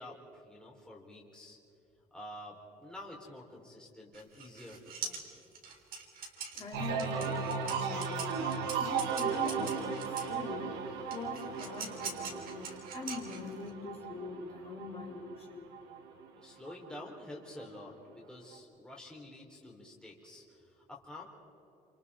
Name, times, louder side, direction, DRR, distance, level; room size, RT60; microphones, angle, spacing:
voice 1, 0.0-1.6 2.1-5.3 16.3-21.3, left 1 dB, 5° left, -3 dB, 4.0 m, -49 dB
sound 1, 4.1-10.4 11.1-13.7, right 5 dB, 60° right, 3.8 m, -43 dB
voice 2, 6.5-8.5 8.8-10.8 11.1-15.7, left 4 dB, 35° left, -3 dB, 4.5 m, -43 dB
sound 2, 6.7-16.3 16.7-17.2, right 6 dB, 90° right, 2.4 m, -36 dB
27.5 x 27.5 x 4.3 m, 3.0 s
cardioid pair, 110°, 17 cm